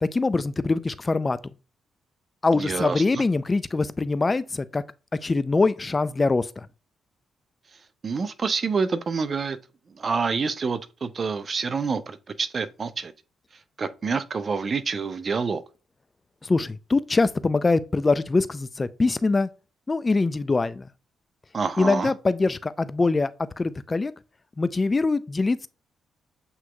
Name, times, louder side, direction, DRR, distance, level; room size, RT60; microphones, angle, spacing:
voice 1, 0.0-1.4 2.4-4.8 5.2-6.7 16.4-19.5 19.9-20.9 21.8-23.3 23.6-24.1 24.6-25.7, left 3 dB, 30° left, 0.4 m, -23 dB
voice 2, 2.6-3.2 8.0-9.6 10.0-13.1 13.8-15.6 21.5-22.1, right 5 dB, 45° right, 0.5 m, -27 dB
8.1 x 2.9 x 2.2 m
supercardioid pair, 55°, 0 cm